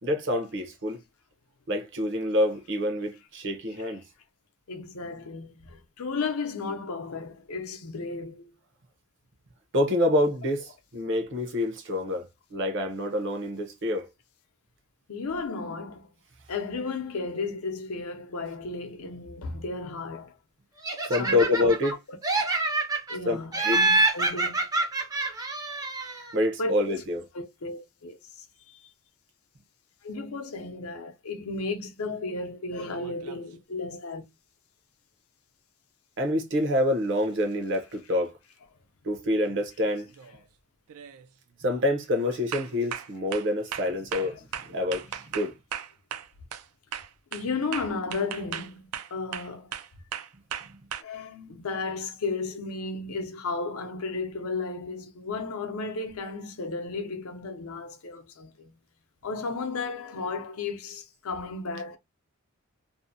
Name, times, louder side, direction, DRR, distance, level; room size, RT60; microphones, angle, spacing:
voice 1, 0.0-1.0 1.7-4.0 9.7-14.1 21.1-22.0 23.2-23.8 26.3-27.3 36.2-38.3 39.0-40.1 41.6-45.5, left 1 dB, 55° right, 0.7 m, -27 dB
voice 2, 4.7-8.5 15.1-16.1 16.5-20.3 21.2-21.4 23.1-24.7 26.6-26.7 27.3-28.1 30.0-34.2 47.3-49.7 51.0-58.7 59.2-62.0, left 3 dB, 70° left, 0.6 m, -34 dB
Laughter, 20.8-21.9 22.2-23.2 23.5-26.3, right 3 dB, 15° right, 0.5 m, -26 dB
sound 1, 32.8-33.5 37.7-37.8 39.4-39.7 40.1-40.4 40.9-41.3 41.7-41.9 42.5-46.7 46.9-51.0, right 9 dB, 80° right, 0.4 m, -37 dB
2.7 x 2.1 x 2.6 m
head